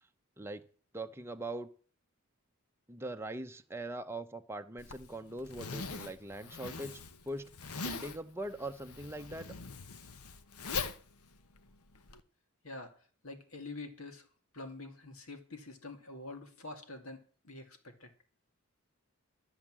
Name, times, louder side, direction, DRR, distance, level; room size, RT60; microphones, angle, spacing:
voice 1, 0.9-1.7 2.9-7.0 7.2-7.5 7.8-9.5, right 1 dB, 10° right, 6 dB, 0.8 m, -41 dB
Zipper (clothing), 4.8-12.2, left 4 dB, 85° left, 1.1 m, -42 dB
voice 2, 12.6-14.3 14.5-18.1, left 2 dB, 70° left, 6 dB, 2.3 m, -46 dB
13.0 x 7.3 x 7.5 m, 0.42 s
head